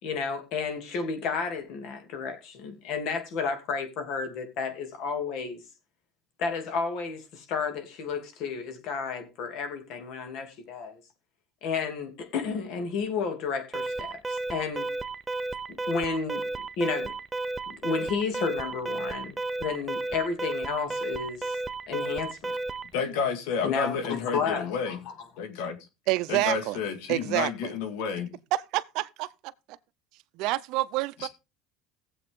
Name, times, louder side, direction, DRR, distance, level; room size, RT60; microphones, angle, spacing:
voice 1, 0.0-5.6 6.4-11.0 11.6-14.9 15.7-16.4 16.8-17.2 17.7-21.6 21.9-22.5 23.6-25.1, left 5 dB, 60° left, 2.8 m, -32 dB
Alarm, 13.7-22.9, right 3 dB, 15° right, 0.7 m, -33 dB
voice 2, 22.9-25.0 25.4-25.8 26.3-28.3 31.2-31.3, left 6 dB, 80° left, 2.1 m, -30 dB
voice 3, 26.1-26.8 27.1-27.7 28.5-29.3 30.4-31.3, right 18 dB, 65° right, 0.6 m, -28 dB
16.5 x 7.8 x 3.7 m
supercardioid pair, 125°, 0 cm